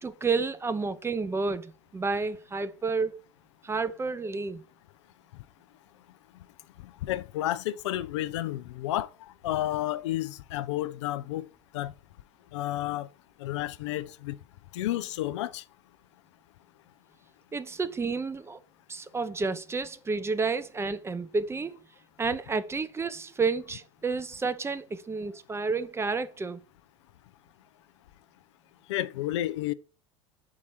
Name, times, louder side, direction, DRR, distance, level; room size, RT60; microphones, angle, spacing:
voice 1, 0.0-3.2 3.6-4.6 17.5-18.6 18.9-21.8 22.2-26.6, right 4 dB, 15° right, 0.7 m, -30 dB
voice 2, 7.0-11.5 11.7-11.9 12.5-13.1 13.4-14.4 14.7-15.6 28.9-29.7, left 14 dB, 70° left, 0.5 m, -31 dB
5.9 x 4.8 x 4.3 m
hypercardioid pair, 80°, 16 cm